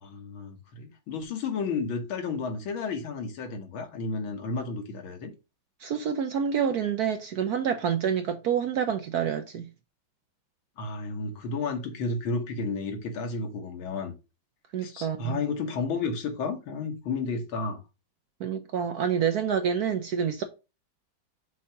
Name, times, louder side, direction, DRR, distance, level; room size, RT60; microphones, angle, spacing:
voice 1, 0.0-5.3 10.8-14.1 14.8-17.8, left 4 dB, 80° left, 2.0 m, -32 dB
voice 2, 5.8-9.7 14.7-15.4 18.4-20.4, right 8 dB, 70° right, 0.9 m, -27 dB
6.2 x 2.9 x 5.6 m
omnidirectional pair, 2.2 m